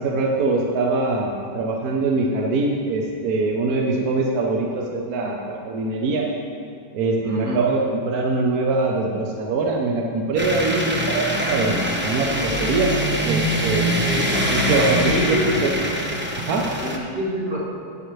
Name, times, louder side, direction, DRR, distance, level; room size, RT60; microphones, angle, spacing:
voice 1, 0.0-6.4 6.9-13.9 14.5-15.7 16.4-16.8, right 3 dB, 70° right, 0 dB, 1.2 m, -23 dB
voice 2, 7.2-7.6 14.0-14.2 15.1-15.5 16.7-17.6, equal, 85° right, -7 dB, 3.0 m, -26 dB
sound 1, 10.4-17.0, equal, 15° right, 0.4 m, -23 dB
11.0 x 9.0 x 3.1 m, 2.4 s
omnidirectional pair, 1.8 m